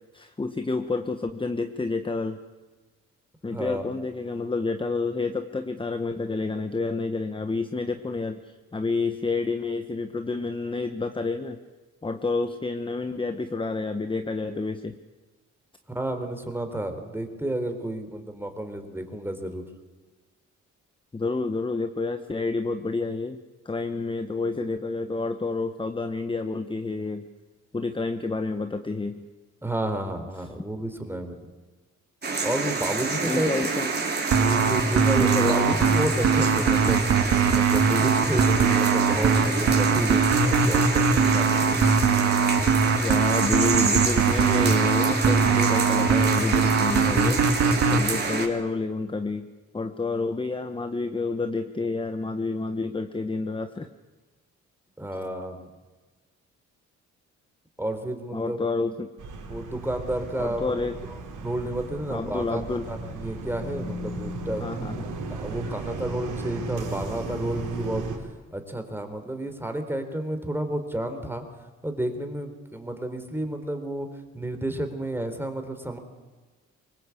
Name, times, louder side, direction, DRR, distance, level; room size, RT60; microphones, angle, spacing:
voice 1, 0.1-2.4 3.4-11.6 12.0-15.0 21.1-23.4 23.6-27.3 27.7-29.3 33.2-33.9 35.2-35.8 43.0-47.5 47.9-53.9 58.3-59.1 60.4-60.9 62.1-62.9 64.6-65.1, left 3 dB, 15° left, 8 dB, 1.1 m, -29 dB
voice 2, 3.5-3.8 15.9-19.6 29.6-31.5 32.4-33.5 34.4-37.0 37.5-41.8 55.0-55.7 57.8-58.6 59.5-60.7 61.4-62.6 62.9-64.6 65.3-68.0 68.5-71.4 71.8-74.1 74.3-76.0, right 1 dB, 5° right, 6 dB, 3.9 m, -31 dB
sound 1, 32.2-48.5, right 4 dB, 35° right, 4.2 m, -28 dB
sound 2, 34.3-48.0, right 5 dB, 60° right, 2.2 m, -21 dB
sound 3, 59.2-68.2, right 2 dB, 85° right, 5.0 m, -35 dB
24.0 x 19.5 x 8.5 m, 1.3 s
cardioid pair, 90°, 30 cm